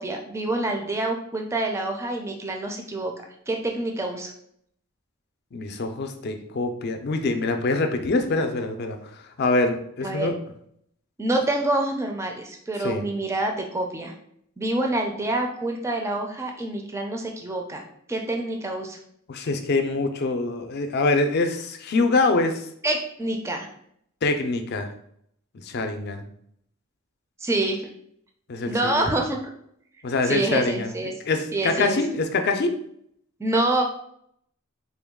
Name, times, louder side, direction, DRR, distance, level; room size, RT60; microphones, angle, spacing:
voice 1, 0.0-3.1 3.5-4.3 10.0-10.3 11.2-14.1 14.6-17.8 18.1-19.0 22.8-23.7 27.4-27.8 28.7-29.4 30.2-31.1 31.5-32.0 33.4-33.8, right 2 dB, 15° right, 2 dB, 0.3 m, -26 dB
voice 2, 5.5-9.0 9.4-10.3 12.8-13.0 19.3-22.7 24.2-24.9 25.6-26.2 28.5-29.0 30.0-30.9 31.3-32.7, left 3 dB, 50° left, 6 dB, 0.4 m, -24 dB
3.7 x 2.2 x 3.5 m, 0.69 s
head